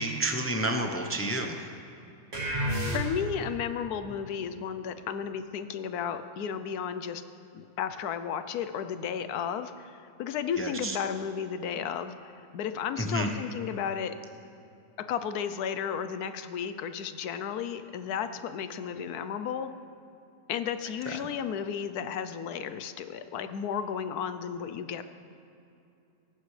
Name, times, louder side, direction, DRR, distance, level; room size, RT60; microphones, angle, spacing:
voice 1, 0.0-1.7 10.6-11.0 13.0-13.3 21.2-21.3, right 1 dB, 15° left, 3 dB, 0.4 m, -30 dB
sound 1, 2.3-3.5, equal, 50° right, 2.8 m, -30 dB
voice 2, 2.9-7.2 7.5-14.2 15.1-19.7 20.5-25.0, left 8 dB, 75° left, 10 dB, 1.2 m, -33 dB
18.0 x 15.0 x 3.3 m, 2.7 s
omnidirectional pair, 1.7 m